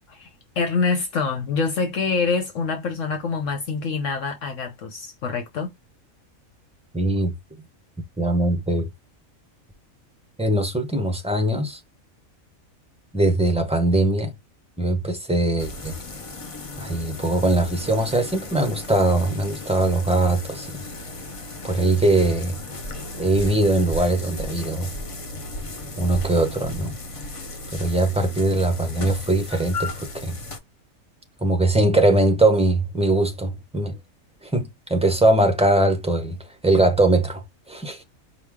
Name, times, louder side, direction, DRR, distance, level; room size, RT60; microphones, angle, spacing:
voice 1, 0.6-5.7, left 4 dB, 70° left, 1.2 m, -25 dB
voice 2, 6.9-7.3 8.2-8.9 10.4-11.8 13.1-14.3 14.8-16.0 16.8-20.7 21.6-22.5 23.2-24.9 26.0-26.9 27.7-30.3 31.4-34.0 34.5-36.4 36.6-37.4 37.7-38.0, right 2 dB, 5° right, 0.6 m, -21 dB
sound 1, 15.6-30.6, left 2 dB, 35° left, 0.5 m, -36 dB
5.0 x 2.4 x 3.5 m
omnidirectional pair, 1.4 m